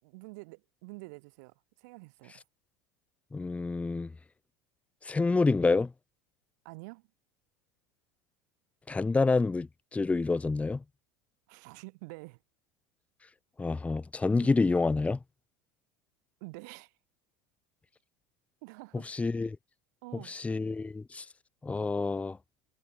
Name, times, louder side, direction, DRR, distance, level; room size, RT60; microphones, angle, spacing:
voice 1, 0.0-2.3 6.6-7.0 11.5-12.4 14.4-14.5 16.4-16.9 18.6-19.1 20.0-20.4, right 28 dB, 70° right, 3.5 m, -47 dB
voice 2, 3.3-4.1 5.0-5.9 8.9-10.8 13.6-15.2 19.0-19.6 20.3-21.3 21.6-22.4, left 3 dB, 15° left, 1.0 m, -28 dB
hypercardioid pair, 90°, 10 cm